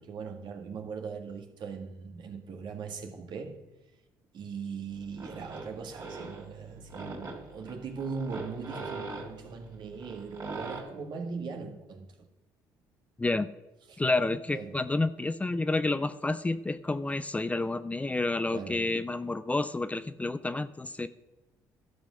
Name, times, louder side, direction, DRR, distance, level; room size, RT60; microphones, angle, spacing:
voice 1, 0.0-3.6 4.3-12.1 13.9-14.0 14.5-14.8 18.5-18.9, right 5 dB, 60° right, 1.8 m, -40 dB
sound 1, 4.9-10.8, right 3 dB, 40° right, 3.3 m, -42 dB
voice 2, 13.2-13.5 14.0-21.1, left 2 dB, 15° left, 0.5 m, -29 dB
12.5 x 5.6 x 6.2 m
supercardioid pair, 70°, 9 cm